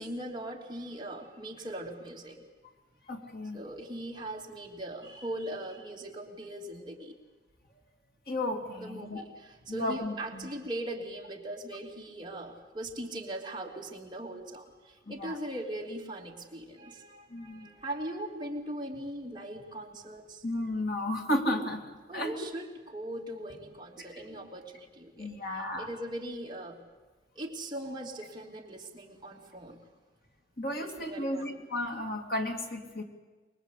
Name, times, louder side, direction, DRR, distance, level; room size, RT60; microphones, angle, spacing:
voice 1, 0.0-2.4 3.5-7.1 8.8-20.4 22.1-26.8 27.3-29.8 30.8-31.5, right 1 dB, 25° right, 0 dB, 2.6 m, -40 dB
voice 2, 3.1-3.6 8.3-9.2 9.7-10.5 15.1-15.4 17.3-17.7 20.4-21.8 22.1-22.3 24.0-24.3 25.2-25.9 30.6-33.0, left 1 dB, 55° left, 3 dB, 2.6 m, -33 dB
24.5 x 22.0 x 8.3 m, 1.3 s
head